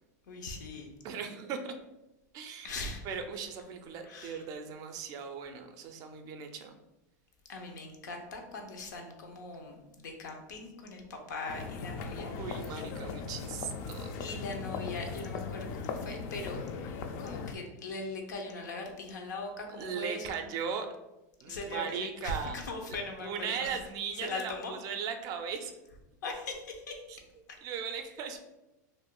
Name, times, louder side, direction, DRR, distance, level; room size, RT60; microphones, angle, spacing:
voice 1, 0.3-0.9 2.6-3.2 4.0-4.4 7.5-12.8 14.2-16.6 17.2-20.4 21.5-23.8 24.2-24.7 26.2-27.0 27.5-27.6, left 3 dB, 85° left, 2 dB, 0.7 m, -40 dB
voice 2, 1.0-1.7 2.3-2.8 3.0-6.7 12.4-14.3 19.8-20.9 21.4-22.6 23.2-25.7 27.1-27.2 27.6-28.4, right 6 dB, 40° right, 6 dB, 0.4 m, -38 dB
sound 1, 11.5-17.6, left 5 dB, 50° left, 0.4 m, -38 dB
2.5 x 2.3 x 3.7 m, 0.96 s
supercardioid pair, 130°, 10 cm